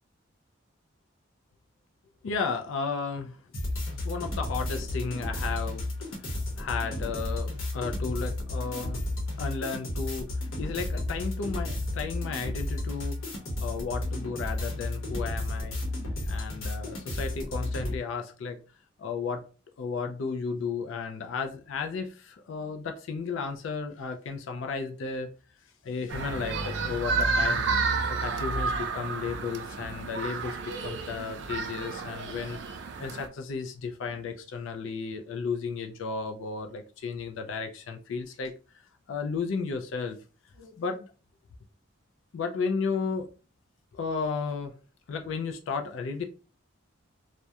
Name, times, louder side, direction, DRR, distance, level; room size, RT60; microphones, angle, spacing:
voice 1, 2.2-3.4 4.0-9.0 9.4-10.3 10.6-15.8 16.3-18.6 19.0-19.4 19.8-25.3 25.8-27.7 28.1-30.6 30.8-32.6 33.0-40.2 40.6-41.1 42.3-43.3 43.9-44.7 45.1-46.2, left 5 dB, 70° left, 0.3 m, -34 dB
sound 1, 3.5-18.0, left 1 dB, 90° left, 0.9 m, -32 dB
sound 2, 26.1-33.3, right 4 dB, 55° right, 0.3 m, -30 dB
2.3 x 2.1 x 2.7 m
head